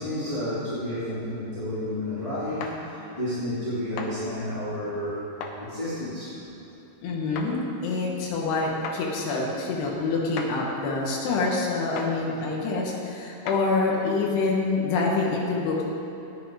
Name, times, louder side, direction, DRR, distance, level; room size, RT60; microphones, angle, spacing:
voice 1, 0.0-5.2 5.6-6.4, left 1 dB, 15° left, -13 dB, 1.8 m, -31 dB
sound 1, 2.6-2.8 4.0-4.1 5.4-5.6 7.4-7.5 8.8-9.0 10.4-10.5 12.0-12.1 13.5-13.6, left 5 dB, 70° left, 2.4 m, -35 dB
voice 2, 7.0-15.8, left 3 dB, 85° left, -2 dB, 3.5 m, -26 dB
14.5 x 9.7 x 5.0 m, 2.8 s
omnidirectional pair, 4.6 m